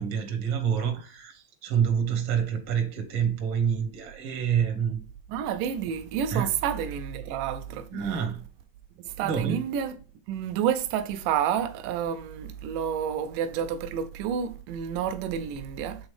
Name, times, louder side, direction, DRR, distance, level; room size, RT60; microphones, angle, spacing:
voice 1, 0.0-5.0 6.3-6.5 7.9-8.4 9.2-9.6, right 8 dB, 75° right, 1.2 m, -27 dB
voice 2, 5.3-7.9 9.1-9.9 10.3-16.1, right 9 dB, 90° right, 2.2 m, -29 dB
8.0 x 3.7 x 3.2 m
omnidirectional pair, 3.6 m